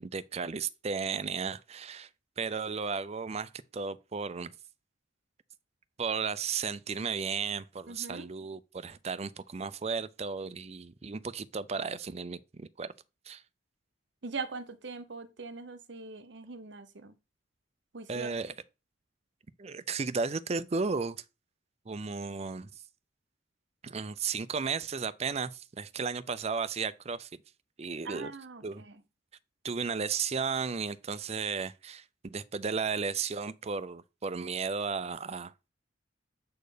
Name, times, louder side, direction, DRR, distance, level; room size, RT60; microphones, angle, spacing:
voice 1, 0.0-2.1 2.4-4.5 6.0-12.9 13.3-13.4 18.1-18.5 19.6-21.2 21.9-22.7 23.8-27.3 27.8-28.3 28.6-28.8 29.6-35.7, right 5 dB, 35° right, 0.5 m, -34 dB
voice 2, 7.9-8.3 14.2-17.2 17.9-18.3 28.0-29.0, right 4 dB, 65° right, 0.9 m, -41 dB
7.7 x 4.4 x 5.0 m
head